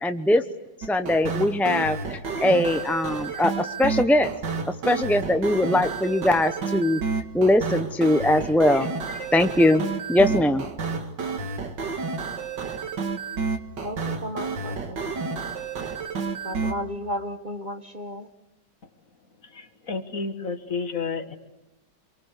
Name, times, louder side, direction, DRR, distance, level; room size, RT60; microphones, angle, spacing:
voice 1, 0.0-0.4 0.9-4.3 4.7-7.0 7.3-9.8 10.1-10.6, left 1 dB, ahead, 8 dB, 0.4 m, -21 dB
sound 1, 0.8-16.7, right 4 dB, 75° right, 2.6 m, -30 dB
voice 2, 13.8-15.4 16.4-18.3, left 1 dB, 25° right, 7 dB, 1.5 m, -34 dB
voice 3, 19.4-21.4, left 4 dB, 50° left, 8 dB, 2.1 m, -31 dB
28.5 x 23.5 x 8.3 m, 0.96 s
omnidirectional pair, 1.9 m